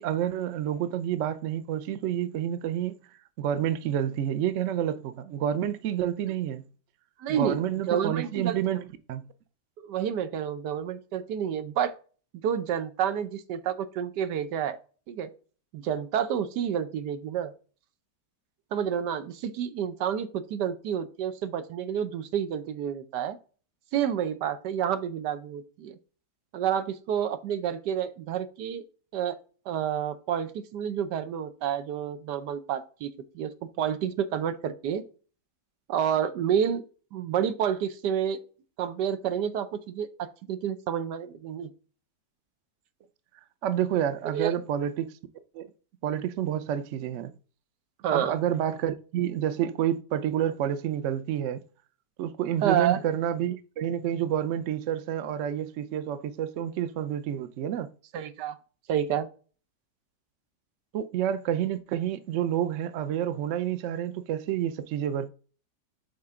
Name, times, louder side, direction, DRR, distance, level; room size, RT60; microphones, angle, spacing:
voice 1, 0.0-3.0 3.4-6.6 7.4-9.2 43.6-45.1 45.5-45.7 46.0-47.3 48.1-51.6 52.2-57.9 60.9-65.3, right 10 dB, 60° right, 0.8 m, -29 dB
voice 2, 7.2-8.6 9.8-11.9 12.4-14.8 15.1-15.3 15.7-17.5 18.7-23.4 23.9-26.0 26.5-28.8 29.1-29.4 29.7-33.1 33.3-33.5 33.8-35.0 35.9-36.8 37.1-38.4 38.8-40.1 40.5-41.7 44.2-44.5 48.0-48.3 52.6-53.0 58.1-58.6 58.9-59.3, right 9 dB, 85° right, 1.4 m, -29 dB
7.7 x 4.4 x 3.6 m
omnidirectional pair, 1.8 m